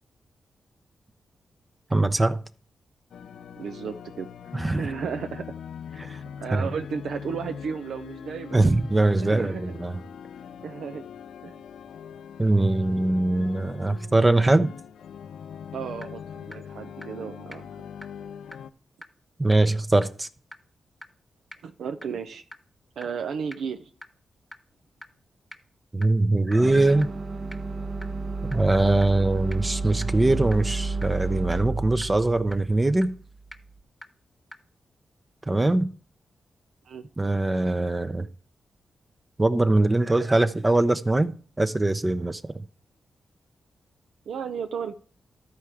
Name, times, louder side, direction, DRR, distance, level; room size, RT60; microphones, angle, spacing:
voice 1, 1.9-2.4 4.5-4.9 6.0-6.2 6.5-6.7 8.5-10.0 12.4-14.7 19.4-20.3 25.9-27.1 28.5-33.1 35.5-35.9 37.2-38.3 39.4-42.6, right 2 dB, 20° right, 0.6 m, -22 dB
sound 1, 3.1-18.7, left 8 dB, 90° left, 0.4 m, -42 dB
voice 2, 3.6-4.3 4.8-5.6 6.4-8.7 9.2-9.6 10.6-11.0 11.4-11.6 15.7-17.7 21.6-22.4 23.0-23.9 36.9-37.0 44.3-44.9, right 6 dB, 85° right, 0.5 m, -33 dB
sound 2, 15.5-15.6 16.0-16.1 16.5-16.6 17.0-17.1 17.5-17.6 18.0-18.1 18.5-18.6 19.0-19.1 19.5-19.6 20.0-20.1 20.5-20.6 21.0-21.1 21.5-21.6 22.0-22.1 22.5-22.6 23.0-23.1 23.5-23.6 24.0-24.1 24.5-24.6 25.0-25.1 25.5-25.6 26.0-26.1 26.5-26.6 27.0-27.1 27.5-27.6 28.0-28.1 28.5-28.6 29.0-29.1 29.5-29.6 30.0-30.1 30.5-30.6 31.0-31.1 31.5-31.6 32.0-32.1 32.5-32.6 33.0-33.1 33.5-33.6 34.0-34.1 34.5-34.6, equal, ahead, 1.2 m, -41 dB
sound 3, 26.6-33.7, right 3 dB, 50° right, 0.9 m, -31 dB
13.0 x 4.5 x 4.8 m
cardioid pair, 75°, 0 cm